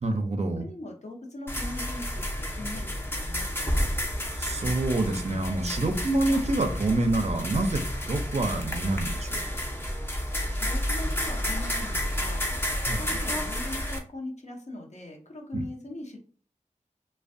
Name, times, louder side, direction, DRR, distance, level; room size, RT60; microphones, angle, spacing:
voice 1, 0.0-0.7 4.4-9.4 12.9-13.2 15.5-15.6, right 2 dB, 55° right, 5 dB, 0.5 m, -27 dB
voice 2, 0.6-3.8 10.5-16.2, left 2 dB, 60° left, 1 dB, 0.6 m, -41 dB
sound 1, 1.5-14.0, equal, 15° left, 0.5 m, -30 dB
2.5 x 2.1 x 2.5 m, 0.44 s
wide cardioid pair, 50°, 13 cm